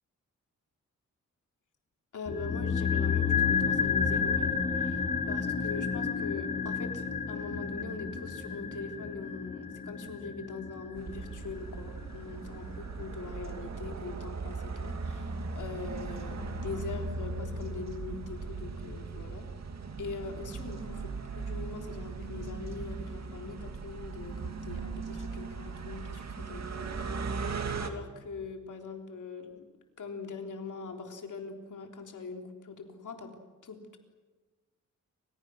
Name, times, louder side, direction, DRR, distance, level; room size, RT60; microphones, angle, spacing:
voice 1, 2.1-19.5 20.0-29.6 30.0-33.3 33.6-34.0, left 4 dB, 85° left, 3 dB, 3.6 m, -42 dB
sound 1, 2.3-12.5 12.8-12.9, left 6 dB, 25° left, 1.7 m, -31 dB
sound 2, 11.0-27.9, right 4 dB, 60° right, 2.5 m, -38 dB
29.0 x 27.0 x 6.4 m, 1.3 s
wide cardioid pair, 160°, 30 cm